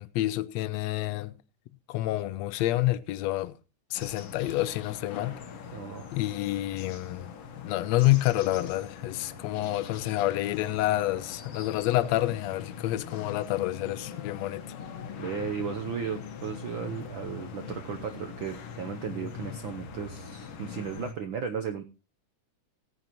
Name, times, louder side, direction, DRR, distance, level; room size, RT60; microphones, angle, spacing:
voice 1, 0.0-1.3 1.9-3.6 3.9-5.4 6.1-7.3 7.6-14.8, left 16 dB, 75° left, 1.8 m, -28 dB
sound 1, 3.9-21.1, left 6 dB, 55° left, 2.1 m, -42 dB
voice 2, 5.7-6.1 15.2-21.8, right 7 dB, 70° right, 1.2 m, -35 dB
17.0 x 9.5 x 3.0 m
omnidirectional pair, 3.4 m